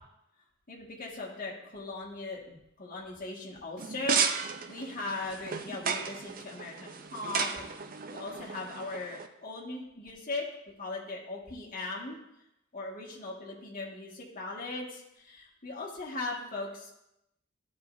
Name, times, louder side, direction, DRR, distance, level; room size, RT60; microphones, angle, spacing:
voice 1, 0.7-7.7 8.2-10.5 10.8-12.2 12.7-16.9, left 2 dB, 40° left, -4 dB, 1.6 m, -39 dB
sound 1, 3.8-9.3, right 6 dB, 40° right, 0.5 m, -34 dB
13.5 x 4.7 x 2.5 m, 0.84 s
head